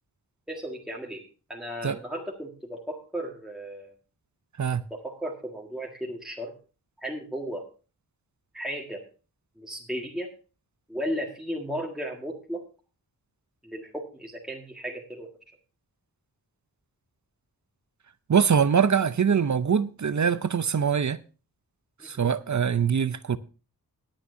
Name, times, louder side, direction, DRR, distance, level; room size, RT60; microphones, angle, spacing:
voice 1, 0.5-1.2 1.5-3.9 4.9-6.5 7.0-7.6 8.5-9.0 9.6-10.3 10.9-12.6 13.6-15.5 22.0-22.1, equal, ahead, 1.7 m, -35 dB
voice 2, 18.3-21.2 22.0-23.4, right 7 dB, 45° right, 0.6 m, -23 dB
19.0 x 8.9 x 2.7 m
wide cardioid pair, 95°, 39 cm